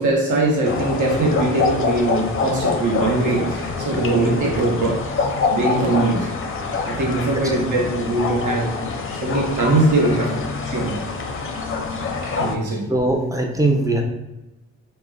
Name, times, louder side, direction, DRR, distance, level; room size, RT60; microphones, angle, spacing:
voice 1, 0.0-6.3 6.8-8.7 9.2-10.4 10.7-11.0 12.2-12.9, right 2 dB, 60° right, 0 dB, 0.8 m, -21 dB
sound 1, 0.6-12.5, left 4 dB, 40° left, 0.5 m, -25 dB
voice 2, 12.7-14.0, right 2 dB, 10° right, 2 dB, 0.5 m, -21 dB
3.3 x 2.1 x 2.2 m, 0.98 s
supercardioid pair, 45°, 34 cm